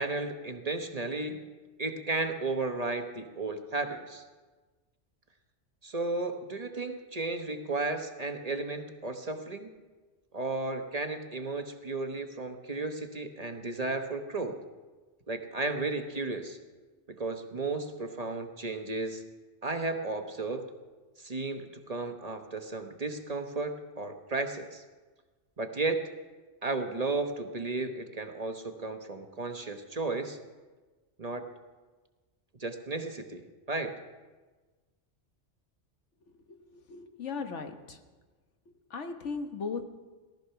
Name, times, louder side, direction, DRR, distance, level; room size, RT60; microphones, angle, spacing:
voice 1, 0.0-1.4 1.8-4.2 5.8-9.7 10.3-14.6 15.3-16.6 17.1-19.2 19.6-20.6 21.2-24.8 25.6-26.1 26.6-30.4 31.2-31.4 32.6-33.4 33.7-33.9, right 3 dB, 35° right, 6 dB, 1.1 m, -34 dB
voice 2, 36.3-38.0 38.7-39.8, left 5 dB, 90° left, 6 dB, 1.5 m, -38 dB
18.0 x 13.0 x 5.8 m, 1.3 s
omnidirectional pair, 1.2 m